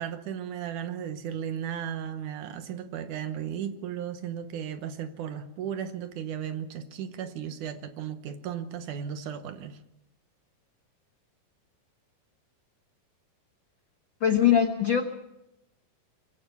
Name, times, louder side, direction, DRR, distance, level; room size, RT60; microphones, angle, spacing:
voice 1, 0.0-9.8, right 9 dB, 70° right, 10 dB, 2.3 m, -35 dB
voice 2, 14.2-15.0, left 9 dB, 75° left, 6 dB, 1.1 m, -21 dB
23.0 x 16.5 x 7.1 m, 0.88 s
omnidirectional pair, 4.0 m